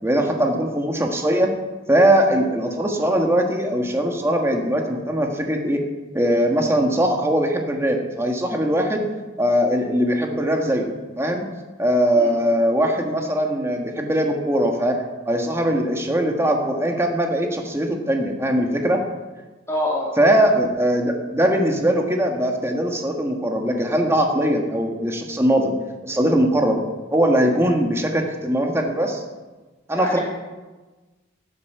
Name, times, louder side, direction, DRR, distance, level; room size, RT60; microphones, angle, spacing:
voice 1, 0.0-1.5 1.9-5.8 6.1-9.0 9.4-10.9 11.2-11.5 11.8-15.0 15.3-19.0 20.2-25.7 26.0-26.8 27.1-29.2 29.9-30.2, equal, 15° right, 2 dB, 1.7 m, -20 dB
voice 2, 19.7-20.1 29.9-30.2, left 1 dB, 15° left, -4 dB, 2.7 m, -25 dB
15.5 x 8.3 x 6.9 m, 1.2 s
head